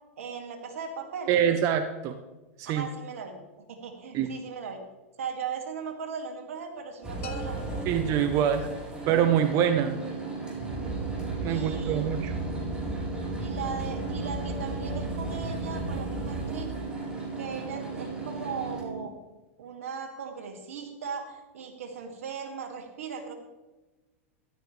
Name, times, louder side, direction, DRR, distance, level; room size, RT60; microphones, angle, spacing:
voice 1, 0.2-1.3 2.7-3.3 3.6-4.8 5.2-7.9 8.5-8.7 11.4-12.4 13.4-16.7 17.4-19.2 19.6-23.3, right 6 dB, 80° right, 3 dB, 2.3 m, -38 dB
voice 2, 1.3-2.2 2.6-2.9 4.1-4.3 7.9-8.6 9.1-10.0 11.4-12.3, right 9 dB, 45° right, 8 dB, 0.8 m, -25 dB
sound 1, 7.0-18.8, right 1 dB, 10° right, 4.0 m, -35 dB
sound 2, 7.2-9.1, left 6 dB, 75° left, 1.5 m, -46 dB
sound 3, 9.1-19.1, right 6 dB, 65° right, 1.6 m, -38 dB
13.5 x 11.5 x 3.3 m, 1.1 s
hypercardioid pair, 120°, 7 cm